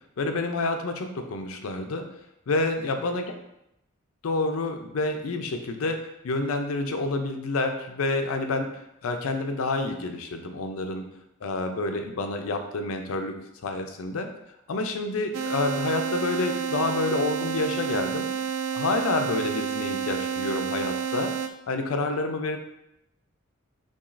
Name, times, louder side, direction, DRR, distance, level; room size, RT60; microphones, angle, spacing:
voice 1, 0.2-2.1 2.5-3.2 4.2-8.7 9.0-11.0 11.4-13.3 13.6-14.3 14.7-18.3 18.7-21.3 21.7-22.6, left 2 dB, 80° left, 5 dB, 0.5 m, -28 dB
sound 1, 15.3-21.5, right 7 dB, 75° right, 0.3 m, -30 dB
6.0 x 2.3 x 2.5 m, 0.84 s
head